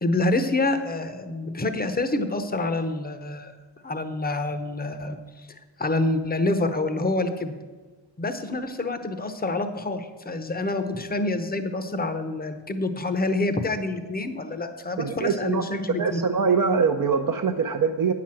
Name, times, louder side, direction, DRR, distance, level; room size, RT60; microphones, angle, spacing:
voice 1, 0.0-3.5 3.8-7.5 8.2-16.2, left 2 dB, 20° left, 9 dB, 0.7 m, -27 dB
voice 2, 15.0-15.6 16.0-18.1, right 5 dB, 45° right, 3 dB, 0.6 m, -23 dB
9.2 x 5.9 x 7.6 m, 1.3 s
wide cardioid pair, 145°, 46 cm